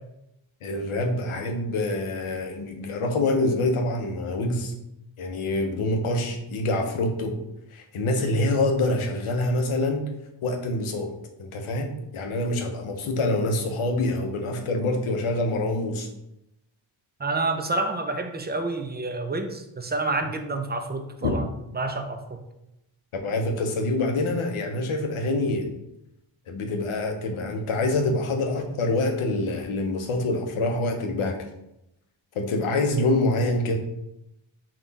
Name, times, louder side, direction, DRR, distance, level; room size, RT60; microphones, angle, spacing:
voice 1, 0.6-4.7 5.2-7.4 7.7-10.1 10.4-11.1 11.4-16.1 21.2-21.3 23.2-25.7 26.5-31.4 32.3-33.8, left 2 dB, 80° left, 4 dB, 0.7 m, -26 dB
voice 2, 17.2-21.4 21.7-22.4, right 2 dB, 20° right, 6 dB, 0.5 m, -28 dB
3.9 x 2.4 x 3.9 m, 0.86 s
cardioid pair, 60°, 49 cm